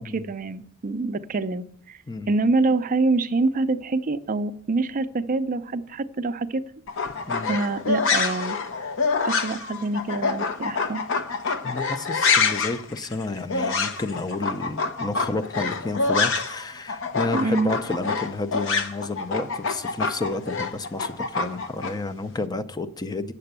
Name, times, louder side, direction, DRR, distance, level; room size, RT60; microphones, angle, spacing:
voice 1, 0.1-2.0 2.3-6.6 7.5-8.6 9.2-11.0 17.3-17.7, right 3 dB, 40° right, 11 dB, 0.4 m, -25 dB
sound 1, 6.9-16.6 16.9-21.9, left 4 dB, 60° left, 0.8 m, -26 dB
voice 2, 7.3-7.6 11.6-23.3, left 2 dB, 20° left, 11 dB, 0.5 m, -31 dB
8.9 x 6.8 x 6.7 m, 0.67 s
head